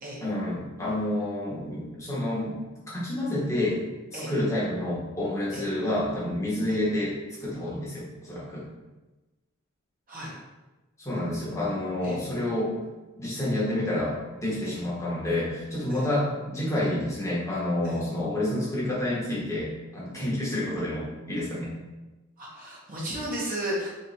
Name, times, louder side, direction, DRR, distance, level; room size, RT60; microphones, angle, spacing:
voice 1, 0.2-3.8 4.1-7.2 7.4-8.7 11.0-12.8 13.2-21.7, left 1 dB, 15° left, -7 dB, 1.0 m, -29 dB
voice 2, 22.4-23.9, right 1 dB, 40° right, -5 dB, 1.0 m, -34 dB
3.2 x 3.1 x 4.0 m, 1.1 s
head